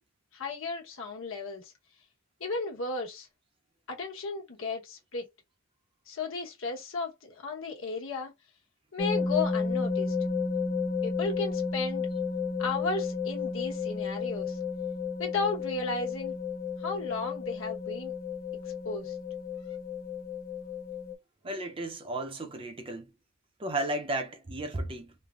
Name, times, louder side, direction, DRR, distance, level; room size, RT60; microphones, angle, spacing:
voice 1, 0.3-1.7 2.4-3.3 3.9-5.2 6.1-8.3 8.9-10.1 11.0-12.1 12.6-14.6 15.2-16.4 16.8-18.1 18.8-19.1, left 3 dB, 65° left, 1.1 m, -34 dB
sound 1, 9.0-21.1, left 5 dB, 45° left, 0.6 m, -32 dB
voice 2, 21.4-23.1 23.6-25.1, right 2 dB, 25° right, 0.6 m, -34 dB
3.2 x 2.1 x 2.4 m
head